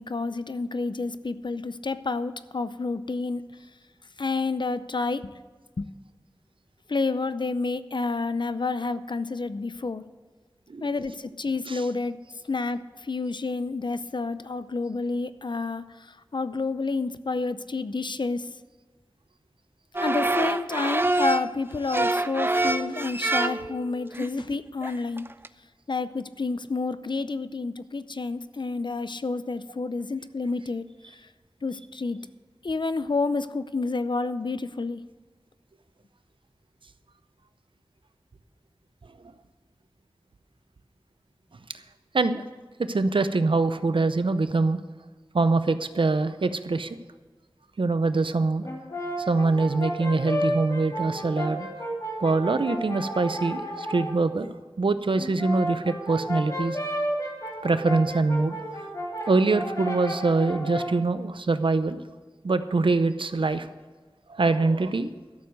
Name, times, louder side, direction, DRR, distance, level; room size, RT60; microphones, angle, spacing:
voice 1, 0.0-3.4 4.2-5.3 5.8-5.9 6.9-10.0 10.8-12.2 12.5-18.5 20.0-25.2 25.9-30.9 31.1-31.3 31.6-32.2 32.6-35.0, left 3 dB, 65° left, 13 dB, 0.6 m, -29 dB
sound 1, 19.9-21.5 21.9-23.8 24.1-24.5 24.8-24.9 25.2-25.5, right 2 dB, 25° right, 0.5 m, -26 dB
voice 2, 42.8-44.8 45.3-47.0 47.8-48.7 49.2-51.7 52.2-56.8 57.6-58.6 59.3-62.0 62.4-63.7 64.3-65.1, right 3 dB, 80° right, 11 dB, 0.6 m, -24 dB
Brass instrument, 48.6-54.2 55.1-61.0, equal, 40° left, 2.5 m, -32 dB
12.5 x 7.0 x 7.7 m, 1.3 s
wide cardioid pair, 50°, 9 cm